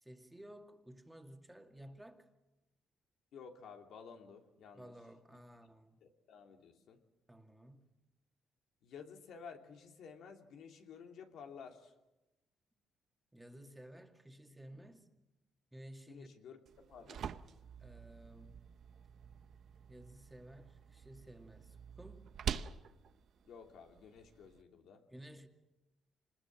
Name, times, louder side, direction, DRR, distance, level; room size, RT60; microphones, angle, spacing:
voice 1, 0.0-2.3 4.7-6.0 7.3-7.9 13.3-15.1 15.7-16.3 17.8-18.7 19.9-22.3 25.1-25.5, right 1 dB, 5° right, 2.3 m, -55 dB
voice 2, 3.3-4.9 6.0-7.0 8.8-11.9 16.1-17.2 23.4-25.0, left 6 dB, 75° left, 2.9 m, -53 dB
sound 1, 16.7-24.6, right 8 dB, 65° right, 0.8 m, -46 dB
25.5 x 20.5 x 7.5 m
cardioid pair, 90°, 0 cm